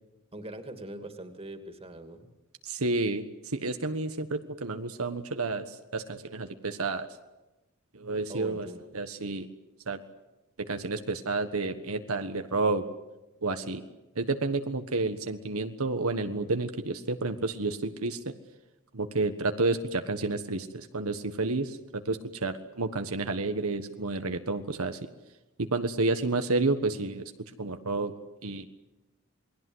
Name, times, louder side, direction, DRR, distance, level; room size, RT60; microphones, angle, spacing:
voice 1, 0.3-2.3 8.3-8.9, right 1 dB, 30° right, 6 dB, 2.6 m, -42 dB
voice 2, 2.6-3.2 3.5-7.1 7.9-8.7 8.9-9.5 9.9-10.0 10.7-12.8 13.4-13.8 14.2-18.3 18.9-25.0 25.6-27.2 27.6-28.1 28.4-28.7, right 3 dB, 85° right, 7 dB, 1.4 m, -30 dB
28.5 x 21.0 x 8.0 m, 1.0 s
head